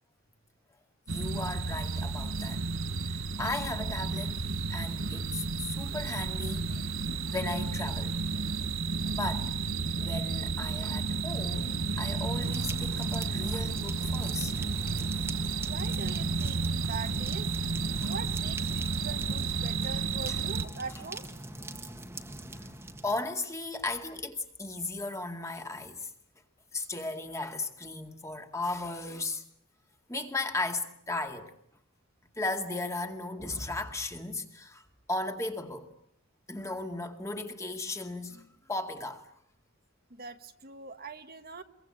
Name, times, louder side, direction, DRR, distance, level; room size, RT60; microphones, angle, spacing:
voice 1, 1.1-2.6 3.1-4.4 4.7-6.9 7.3-8.1 9.0-9.5 10.0-14.6 18.0-18.1 20.3-20.4 22.5-22.7 23.0-26.1 26.7-29.4 30.1-31.5 32.4-35.9 36.5-39.3, left 2 dB, 15° left, 2.2 m, -36 dB
sound 1, 1.1-20.7, right 4 dB, 75° right, 1.4 m, -32 dB
sound 2, 12.4-23.3, right 1 dB, 10° right, 1.7 m, -43 dB
voice 2, 15.7-17.5 18.0-21.3 40.1-41.6, right 4 dB, 45° right, 1.5 m, -42 dB
24.5 x 23.5 x 8.6 m
head